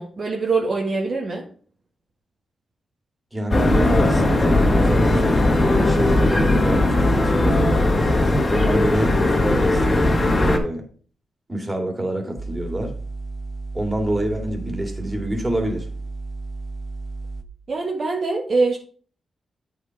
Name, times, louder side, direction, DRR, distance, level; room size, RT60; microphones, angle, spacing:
voice 1, 0.0-1.4 17.7-18.8, right 3 dB, 55° right, 0 dB, 1.4 m, -23 dB
voice 2, 3.3-7.9 8.5-10.1 10.4-10.8 11.5-12.9 13.7-15.9, right 1 dB, 20° right, 3 dB, 2.3 m, -27 dB
sound 1, 3.5-10.6, left 2 dB, 30° left, 1.7 m, -18 dB
sound 2, 12.4-17.4, right 3 dB, 5° left, 0.8 m, -33 dB
8.3 x 5.2 x 4.8 m, 0.43 s
cardioid pair, 80°, 0 cm